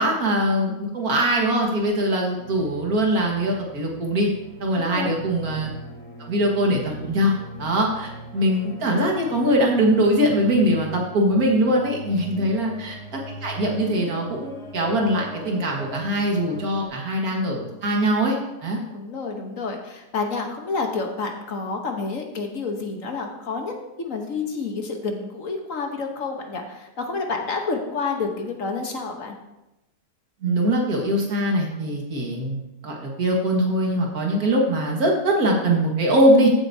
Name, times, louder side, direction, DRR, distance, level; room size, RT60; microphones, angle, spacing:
voice 1, 0.0-4.3 4.6-5.7 6.2-7.3 7.6-18.4 18.6-18.8 30.4-36.5, right 1 dB, 70° right, 0 dB, 2.3 m, -22 dB
sound 1, 2.4-16.9, equal, 80° left, 2.5 m, -41 dB
voice 2, 4.8-5.1 12.3-12.5 18.9-29.3, left 4 dB, 60° left, 3 dB, 1.5 m, -29 dB
14.5 x 8.1 x 2.8 m, 0.94 s
omnidirectional pair, 1.6 m